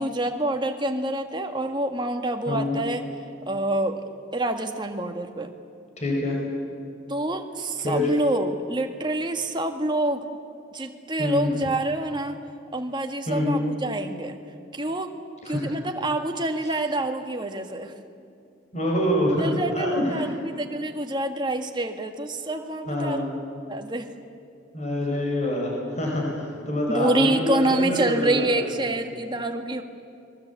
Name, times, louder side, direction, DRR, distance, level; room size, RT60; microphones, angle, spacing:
voice 1, 0.0-3.0 3.5-4.0 4.3-5.5 7.1-10.3 10.7-12.4 12.7-14.4 14.7-15.1 15.5-17.9 19.4-23.2 23.7-24.1 26.9-29.8, right 1 dB, 25° right, 5 dB, 1.8 m, -27 dB
voice 2, 2.5-2.8 6.0-6.4 7.8-8.1 11.2-11.5 13.3-13.6 15.4-15.6 18.7-19.5 19.7-20.3 22.9-23.3 24.7-28.7, left 1 dB, 35° left, -1 dB, 5.3 m, -26 dB
29.5 x 21.5 x 8.4 m, 2.4 s
head